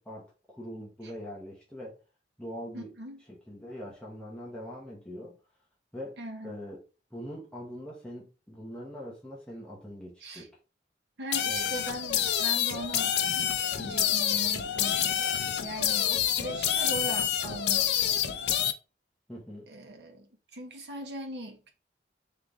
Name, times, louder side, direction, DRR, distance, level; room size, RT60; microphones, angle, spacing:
voice 1, 0.0-2.0 2.4-2.9 3.3-5.3 5.9-6.2 6.4-6.8 7.1-10.5 11.4-11.8 19.3-19.7, equal, 5° left, 1.2 m, -42 dB
voice 2, 2.7-3.2 6.2-6.5 10.2-10.5 11.2-13.2 13.8-15.3 15.6-17.9 19.7-21.7, right 1 dB, 75° right, 1.1 m, -40 dB
sound 1, 11.3-18.7, left 9 dB, 70° left, 0.5 m, -28 dB
3.8 x 3.3 x 3.7 m
head